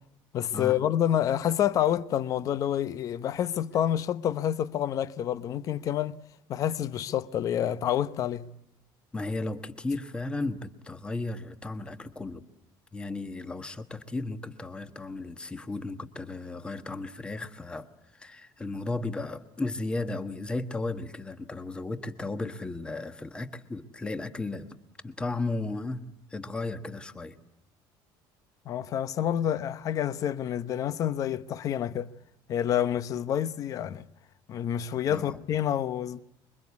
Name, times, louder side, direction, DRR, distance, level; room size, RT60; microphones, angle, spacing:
voice 1, 0.3-6.2 6.5-8.5 28.7-32.1 32.5-34.1 34.5-36.2, left 10 dB, 35° left, 0.9 m, -28 dB
voice 2, 9.1-12.4 12.9-24.8 25.0-26.0 26.3-27.4 35.0-35.4, left 2 dB, 10° left, 1.3 m, -35 dB
26.0 x 23.5 x 8.3 m
cardioid pair, 175°, 9 cm